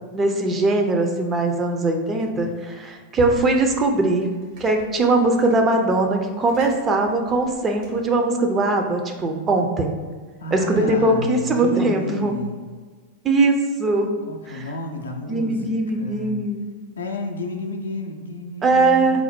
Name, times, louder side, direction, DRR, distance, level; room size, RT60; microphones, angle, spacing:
voice 1, 0.1-4.3 4.6-10.0 10.5-12.3 13.2-14.1 14.5-14.7 15.3-16.6 18.6-19.2, right 2 dB, 20° right, 3 dB, 0.5 m, -20 dB
sound 1, 2.2-2.7 3.1-8.2, right 3 dB, 45° right, 0.8 m, -41 dB
voice 2, 10.4-12.6 14.3-16.4 17.0-19.2, left 2 dB, 70° left, 3 dB, 0.4 m, -31 dB
4.2 x 2.0 x 4.3 m, 1.5 s
figure-of-eight pair, 90°, 0 cm